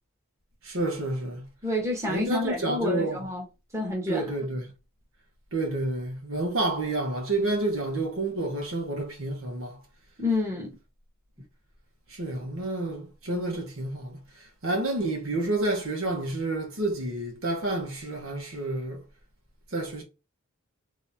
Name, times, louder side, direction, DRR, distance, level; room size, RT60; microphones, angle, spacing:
voice 1, 0.6-1.5 2.1-3.2 4.1-4.7 5.5-9.8 12.1-19.0 19.7-20.0, right 2 dB, 65° right, 1.1 m, -29 dB
voice 2, 1.6-3.4 3.7-4.2 10.2-10.7, left 2 dB, 15° right, 1.2 m, -28 dB
3.5 x 2.8 x 2.8 m
head